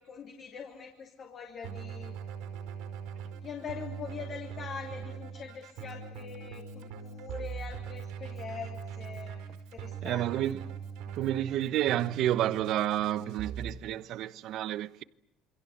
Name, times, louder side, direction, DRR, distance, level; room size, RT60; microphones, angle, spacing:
voice 1, 0.0-2.2 3.4-10.5, left 6 dB, 30° left, 3.2 m, -43 dB
Keyboard (musical), 1.6-13.7, right 7 dB, 70° right, 4.9 m, -41 dB
voice 2, 10.0-10.7 11.1-15.0, right 13 dB, 50° right, 1.0 m, -30 dB
28.0 x 26.0 x 8.1 m
cardioid pair, 170°, 0 cm